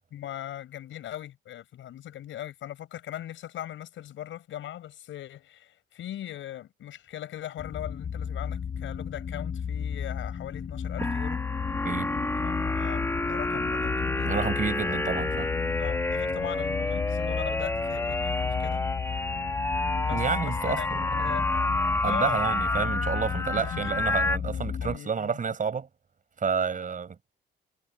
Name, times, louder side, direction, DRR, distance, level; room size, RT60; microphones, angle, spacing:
voice 1, 0.1-11.4 12.4-14.6 14.8-15.1 15.8-18.8 19.2-19.3 20.0-21.5 22.0-22.6 23.5-24.2 24.5-25.3, left 12 dB, 75° left, 6.9 m, -40 dB
sound 1, 7.6-25.0, left 7 dB, 50° left, 6.8 m, -34 dB
sound 2, 11.0-24.4, left 2 dB, 10° left, 1.9 m, -29 dB
voice 2, 14.2-15.5 20.1-21.0 22.0-25.9 26.4-27.2, right 6 dB, 40° right, 5.3 m, -30 dB
cardioid pair, 90°, 20 cm